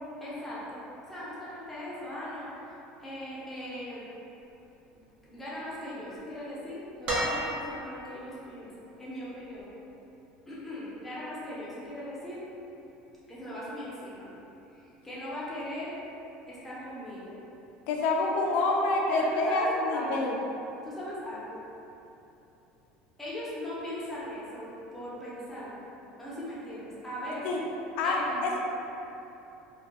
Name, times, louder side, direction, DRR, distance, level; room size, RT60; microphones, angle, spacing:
voice 1, 0.2-0.8 1.1-4.1 5.3-9.7 10.5-12.4 13.3-14.3 14.7-16.0 16.5-17.4 19.1-20.4 20.8-21.6 23.2-25.8 26.2-27.6 28.0-28.6, left 1 dB, 5° left, -9 dB, 0.6 m, -39 dB
sound 1, 7.0-8.1 9.6-9.7, right 1 dB, 45° right, 0.7 m, -31 dB
voice 2, 17.9-20.3 27.4-27.6 28.0-28.2 28.4-28.6, left 2 dB, 55° left, -1 dB, 0.3 m, -27 dB
2.7 x 2.2 x 2.8 m, 3.0 s
cardioid pair, 170°, 3 cm